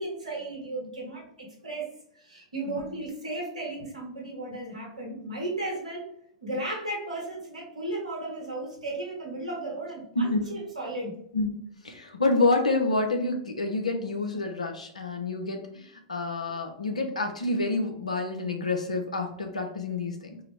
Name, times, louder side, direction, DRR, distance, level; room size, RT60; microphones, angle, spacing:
voice 1, 0.0-6.1 6.4-11.1, right 2 dB, 90° right, -2 dB, 1.5 m, -35 dB
voice 2, 10.1-10.5 11.3-11.5 11.8-20.4, left 2 dB, 90° left, 4 dB, 0.7 m, -28 dB
4.7 x 2.1 x 3.3 m, 0.69 s
hypercardioid pair, 105°, 4 cm